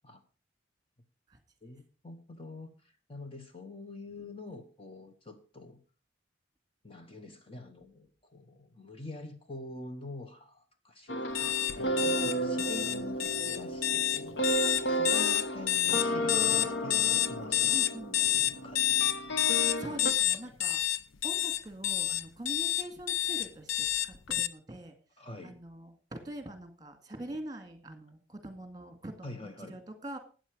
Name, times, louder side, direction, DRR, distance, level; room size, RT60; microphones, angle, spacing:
voice 1, 1.6-2.7 3.1-5.8 6.8-17.8 18.2-19.1 19.9-20.0 20.3-20.6 25.2-25.6 29.2-29.8, left 2 dB, 30° left, 6 dB, 1.0 m, -46 dB
sound 1, 11.1-20.1, right 1 dB, 55° left, 1.1 m, -33 dB
sound 2, 11.3-24.5, left 13 dB, 85° left, 0.7 m, -28 dB
voice 2, 17.7-18.2 19.8-21.0 21.2-25.0 25.4-30.2, right 1 dB, 20° right, 7 dB, 2.0 m, -44 dB
12.0 x 8.9 x 5.0 m, 0.37 s
head